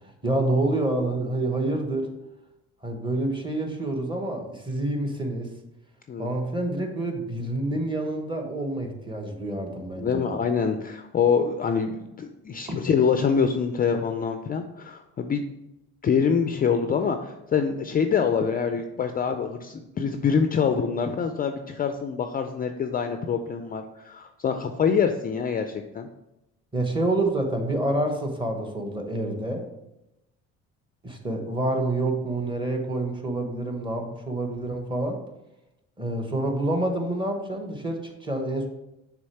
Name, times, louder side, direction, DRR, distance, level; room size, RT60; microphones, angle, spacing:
voice 1, 0.2-2.1 2.8-5.5 6.2-10.4 12.7-12.8 26.7-29.6 31.0-35.2 36.0-38.7, right 2 dB, 15° right, 3 dB, 1.0 m, -27 dB
voice 2, 10.0-15.5 16.0-26.1, left 6 dB, 30° left, 7 dB, 0.4 m, -25 dB
6.4 x 3.5 x 4.5 m, 0.91 s
cardioid pair, 110°, 31 cm